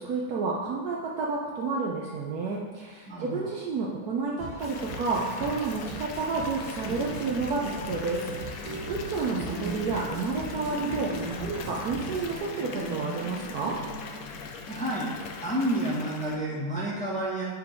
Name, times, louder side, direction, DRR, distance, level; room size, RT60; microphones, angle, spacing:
voice 1, 0.0-8.2 8.5-11.1 11.4-13.8, right 4 dB, 65° right, -2 dB, 1.1 m, -30 dB
voice 2, 3.1-3.4 14.7-15.1 15.4-17.4, right 1 dB, 5° left, -7 dB, 1.2 m, -29 dB
sound 1, 4.4-12.4, right 2 dB, 40° right, 2.0 m, -42 dB
Water tap faucet / Bathtub (filling or washing) / Fill (with liquid), 4.6-16.4, left 5 dB, 65° left, 0.9 m, -41 dB
sound 2, 6.9-14.6, right 3 dB, 85° right, 2.0 m, -39 dB
7.6 x 3.8 x 4.5 m, 1.5 s
omnidirectional pair, 2.0 m